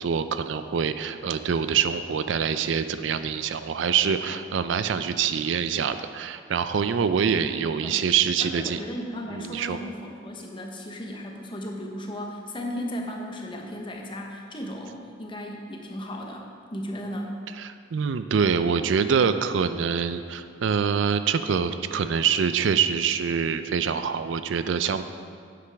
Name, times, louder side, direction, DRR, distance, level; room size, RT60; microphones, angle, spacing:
voice 1, 0.0-8.8 9.3-9.8 17.6-25.0, right 6 dB, 70° right, 11 dB, 0.4 m, -25 dB
voice 2, 8.4-17.4, equal, 25° left, 1 dB, 0.9 m, -35 dB
9.7 x 8.3 x 3.5 m, 2.3 s
head